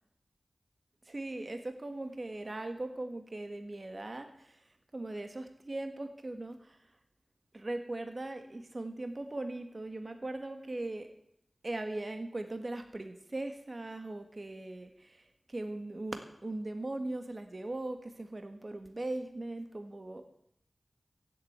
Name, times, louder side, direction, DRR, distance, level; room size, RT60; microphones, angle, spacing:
voice 1, 1.0-4.6 4.9-6.8 7.5-11.1 11.6-20.3, right 2 dB, 40° right, 7 dB, 1.7 m, -39 dB
15.5 x 7.8 x 9.6 m, 0.73 s
wide cardioid pair, 75°, 0 cm